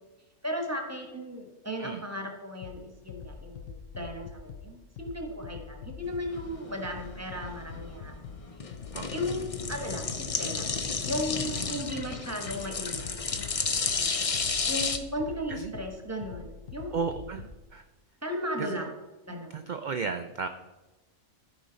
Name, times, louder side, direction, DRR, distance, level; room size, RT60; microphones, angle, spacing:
voice 1, 0.4-8.1 9.1-10.7 11.1-13.5 14.7-17.0 18.2-18.9 19.3-19.6, equal, 10° right, 3 dB, 1.2 m, -36 dB
sound 1, 2.6-17.6, left 6 dB, 80° left, 1.0 m, -45 dB
sound 2, 6.0-15.0, left 4 dB, 45° left, 0.5 m, -32 dB
voice 2, 16.9-17.8 18.6-18.8 19.5-20.5, right 5 dB, 80° right, 8 dB, 0.4 m, -34 dB
14.0 x 5.0 x 4.0 m, 1.1 s
omnidirectional pair, 1.4 m